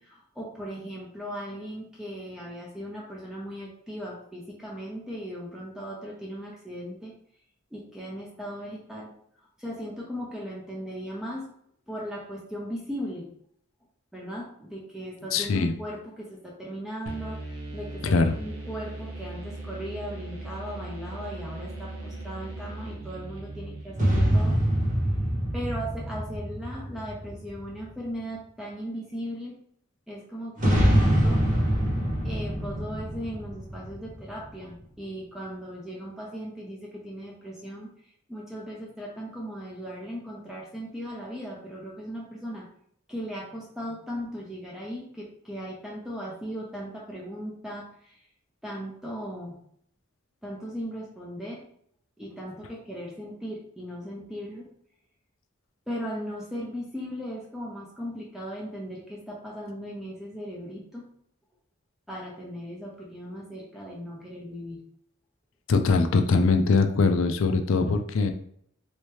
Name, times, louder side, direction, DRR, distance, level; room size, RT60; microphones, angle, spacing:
voice 1, 0.0-7.1 7.7-9.1 9.6-11.5 11.9-13.3 14.1-24.6 25.5-29.6 30.1-31.6 32.2-37.9 38.3-42.7 43.1-48.2 48.6-49.6 50.4-51.6 52.2-54.7 55.9-61.0 62.1-64.8, equal, ahead, -4 dB, 0.6 m, -37 dB
voice 2, 15.3-15.7 18.0-18.4 65.7-68.3, left 4 dB, 70° left, 6 dB, 0.4 m, -22 dB
sound 1, 17.1-24.7, right 2 dB, 85° right, 0.9 m, -39 dB
sound 2, 24.0-27.7 30.6-34.4, equal, 40° right, 1.0 m, -25 dB
3.3 x 2.8 x 3.2 m, 0.65 s
head